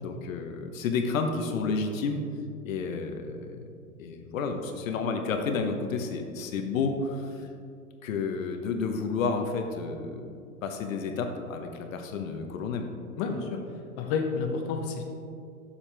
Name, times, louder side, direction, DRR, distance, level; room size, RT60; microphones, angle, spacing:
voice 1, 0.0-2.2 2.6-3.6 4.0-7.5 8.0-12.9, left 4 dB, 65° left, 4 dB, 0.9 m, -31 dB
voice 2, 13.2-13.6 14.0-15.0, left 5 dB, 35° left, 3 dB, 0.8 m, -30 dB
7.4 x 6.9 x 3.4 m, 2.3 s
hypercardioid pair, 120°, 44 cm